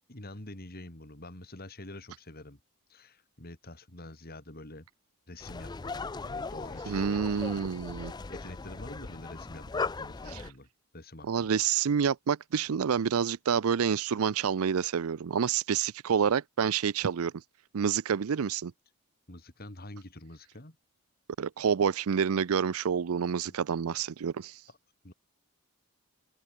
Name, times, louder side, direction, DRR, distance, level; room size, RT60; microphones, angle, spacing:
voice 1, 0.1-2.6 2.9-4.9 5.3-7.4 8.0-10.7 10.9-11.6 19.3-20.8 23.5-23.6 23.8-23.9 25.0-25.1, left 1 dB, 40° left, 2.9 m, -47 dB
sound 1, 5.4-10.5, left 4 dB, 20° left, 0.4 m, -38 dB
voice 2, 6.9-8.1 10.3-10.4 11.2-17.3 17.7-18.7 21.4-24.6, right 7 dB, 75° right, 0.5 m, -28 dB
head